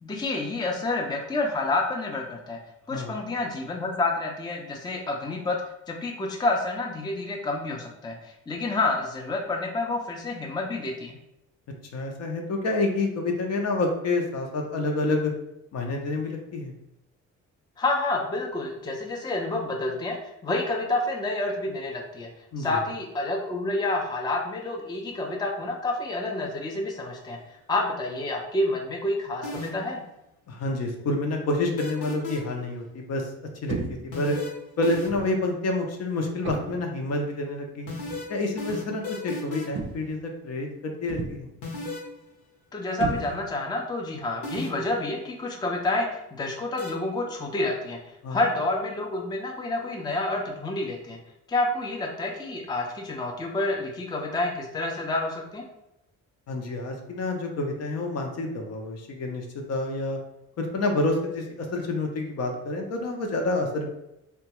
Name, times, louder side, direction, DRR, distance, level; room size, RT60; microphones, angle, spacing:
voice 1, 0.0-2.6 2.9-5.6 5.9-11.2 17.8-20.2 20.4-22.3 22.6-27.4 27.7-30.0 42.7-48.0 48.3-51.2 51.5-55.6, left 2 dB, 15° left, 0 dB, 0.5 m, -29 dB
voice 2, 11.9-15.3 15.7-16.7 22.5-22.8 30.5-33.3 33.6-33.8 34.0-34.4 34.8-37.9 38.3-41.5 48.2-48.4 56.5-60.2 60.6-63.9, left 2 dB, 55° left, 2 dB, 0.7 m, -28 dB
sound 1, 29.4-30.0 31.8-32.6 34.1-35.4 37.9-39.9 41.6-42.1 44.4-45.0 46.8-46.9, left 2 dB, 70° left, 1.0 m, -34 dB
sound 2, 33.7-34.2 35.1-35.4 36.4-36.9 38.1-38.3 39.7-40.2 41.1-41.6 43.0-43.7, right 5 dB, 45° right, 0.4 m, -34 dB
2.8 x 2.2 x 2.9 m, 0.86 s
cardioid pair, 90°, 30 cm